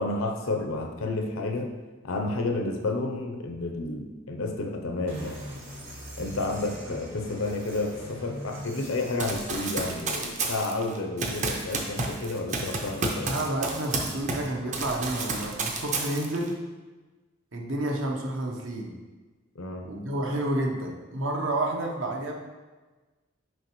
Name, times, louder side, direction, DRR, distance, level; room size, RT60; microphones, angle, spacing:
voice 1, 0.0-1.7 2.0-5.4 6.2-13.3 19.6-19.9, left 2 dB, 80° left, 4 dB, 0.7 m, -31 dB
Sci Fi Hit, 5.1-9.9, equal, 90° right, 1.9 m, -42 dB
Run, 9.2-14.5 14.7-16.5, right 3 dB, 35° right, 0.6 m, -31 dB
voice 2, 13.3-16.6 17.5-18.9 19.8-22.3, right 1 dB, 70° right, 0 dB, 0.9 m, -30 dB
6.3 x 4.8 x 3.1 m, 1.3 s
head